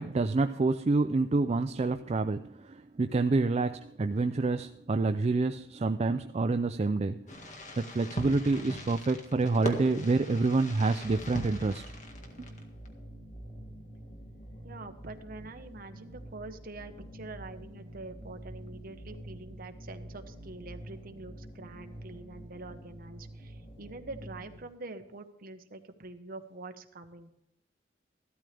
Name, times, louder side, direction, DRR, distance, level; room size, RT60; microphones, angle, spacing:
voice 1, 0.0-7.2 7.8-11.8, right 3 dB, 35° right, 9 dB, 0.4 m, -27 dB
Fireworks, 7.3-12.9, equal, 45° left, 1.9 m, -40 dB
sound 1, 11.0-24.6, right 1 dB, 85° left, 3.0 m, -47 dB
voice 2, 14.6-27.3, right 2 dB, 55° right, 7 dB, 1.2 m, -45 dB
15.0 x 12.5 x 3.4 m, 0.81 s
head